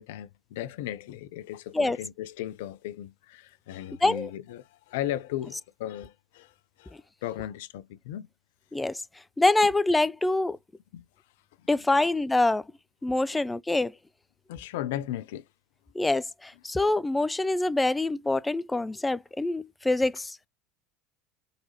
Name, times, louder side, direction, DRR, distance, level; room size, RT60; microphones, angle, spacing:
voice 1, 0.0-8.3 10.9-11.0 11.9-12.1 14.5-15.5, left 13 dB, 70° left, 0.5 m, -36 dB
voice 2, 9.4-10.6 11.7-12.6 13.0-13.9 15.9-20.5, left 2 dB, 10° left, 0.4 m, -25 dB
4.0 x 4.0 x 2.9 m
hypercardioid pair, 80°, 0 cm